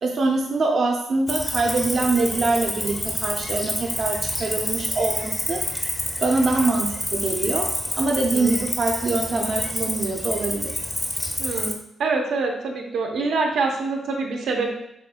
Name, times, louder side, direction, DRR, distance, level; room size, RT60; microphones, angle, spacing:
voice 1, 0.0-5.6 6.2-10.7, right 3 dB, 45° right, 0 dB, 0.5 m, -24 dB
Cricket, 1.3-11.7, left 1 dB, 10° left, 0.6 m, -28 dB
voice 2, 8.2-8.6 11.4-11.7 12.0-14.7, right 3 dB, 85° right, 1 dB, 0.9 m, -25 dB
6.4 x 3.6 x 2.2 m, 0.78 s
wide cardioid pair, 165°, 0 cm